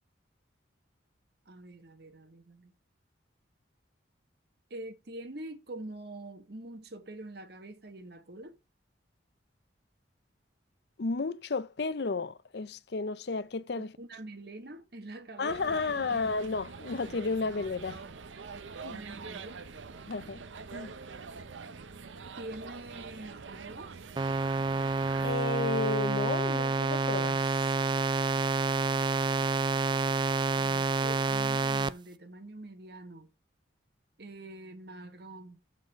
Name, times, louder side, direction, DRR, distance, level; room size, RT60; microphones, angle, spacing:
voice 1, 1.5-2.7 4.7-8.6 13.8-16.4 18.9-19.6 22.4-24.0 30.5-33.3 34.2-35.6, right 1 dB, 55° right, 1.3 m, -45 dB
voice 2, 11.0-13.9 15.4-18.0 18.8-19.0 20.1-20.4 20.7-20.9 25.2-27.5, left 3 dB, 60° left, 0.6 m, -32 dB
sound 1, 15.5-25.4, right 5 dB, 85° right, 0.7 m, -45 dB
sound 2, 24.2-31.9, right 4 dB, 25° right, 0.3 m, -28 dB
7.7 x 4.0 x 6.3 m
head